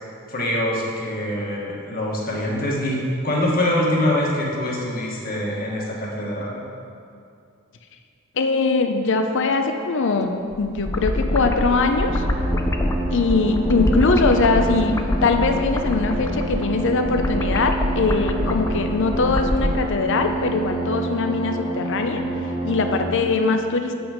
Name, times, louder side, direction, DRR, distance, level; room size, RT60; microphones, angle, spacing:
voice 1, 0.3-3.0 3.2-6.6, left 1 dB, 45° left, -3 dB, 1.5 m, -24 dB
voice 2, 8.4-12.2 13.1-22.2 22.6-23.9, left 3 dB, 60° left, 6 dB, 0.6 m, -21 dB
sound 1, 10.5-19.8, left 1 dB, 15° left, 0.4 m, -25 dB
sound 2, 11.7-23.0, right 2 dB, 20° right, 1.2 m, -29 dB
8.1 x 6.0 x 5.2 m, 2.4 s
head